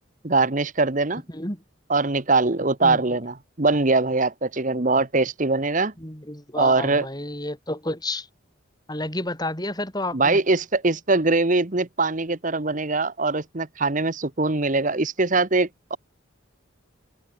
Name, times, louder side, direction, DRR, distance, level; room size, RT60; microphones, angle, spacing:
voice 1, 0.2-1.2 1.9-5.9 6.6-7.1 10.1-16.0, right 3 dB, 40° right, 1.2 m, -22 dB
voice 2, 6.0-8.3 8.9-10.4, left 1 dB, 20° left, 6.4 m, -30 dB
open air
head